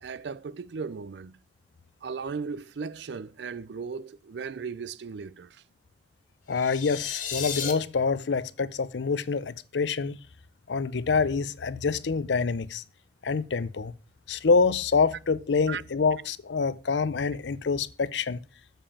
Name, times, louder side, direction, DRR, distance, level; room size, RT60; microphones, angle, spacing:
voice 1, 0.0-1.4 2.0-5.6 15.7-15.8, right 5 dB, 70° right, 0.4 m, -36 dB
voice 2, 6.5-10.2 10.7-12.8 13.2-13.9 14.3-18.4, left 5 dB, 75° left, 0.6 m, -26 dB
sound 1, 6.5-7.7, left 7 dB, 45° left, 1.7 m, -33 dB
7.3 x 5.3 x 7.1 m
head